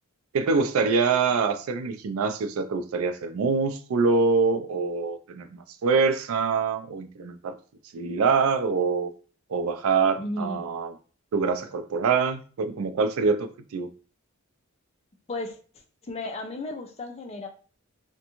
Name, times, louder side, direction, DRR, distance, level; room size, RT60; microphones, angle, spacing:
voice 1, 0.3-7.6 7.9-9.1 9.5-10.9 11.3-13.9, right 4 dB, 70° right, 0.4 m, -25 dB
voice 2, 10.2-10.7 15.3-15.6 16.0-17.5, left 2 dB, 30° left, 0.4 m, -34 dB
2.5 x 2.2 x 2.9 m
head